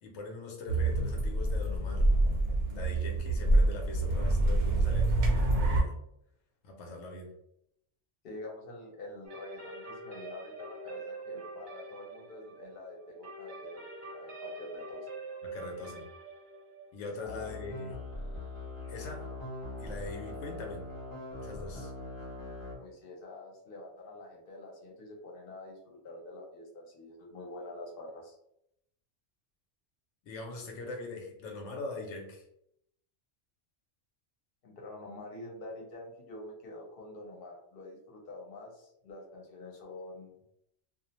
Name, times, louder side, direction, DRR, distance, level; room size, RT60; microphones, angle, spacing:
voice 1, 0.0-2.1 2.5-5.9 6.6-7.3 15.4-16.1 16.9-18.0 18.9-19.3 19.8-20.9 21.4-21.9 30.2-32.4, left 3 dB, 85° left, 1 dB, 0.9 m, -42 dB
sound 1, 0.7-5.8, right 2 dB, 65° right, 0.8 m, -26 dB
voice 2, 8.2-13.8 14.1-15.1 17.0-17.5 22.8-28.4 34.6-40.3, left 2 dB, 55° left, -1 dB, 0.9 m, -46 dB
sound 2, 9.2-18.9, right 2 dB, 85° right, 1.1 m, -45 dB
sound 3, 17.2-22.8, left 2 dB, 20° left, 0.7 m, -41 dB
2.4 x 2.1 x 2.8 m, 0.76 s
omnidirectional pair, 1.2 m